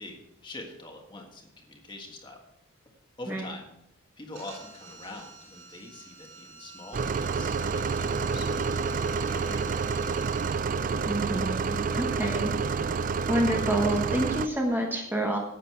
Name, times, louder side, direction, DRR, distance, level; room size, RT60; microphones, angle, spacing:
voice 1, 0.0-2.4 3.2-3.7 4.2-8.8 9.2-10.3, left 2 dB, 20° left, 2 dB, 1.5 m, -44 dB
sound 1, 4.3-10.5, right 3 dB, 60° right, 4.9 m, -47 dB
sound 2, 6.9-14.5, right 5 dB, 40° right, 0.3 m, -28 dB
voice 2, 11.1-12.5 13.3-15.4, right 1 dB, 10° right, 0 dB, 1.1 m, -28 dB
10.5 x 8.4 x 4.6 m, 0.81 s
head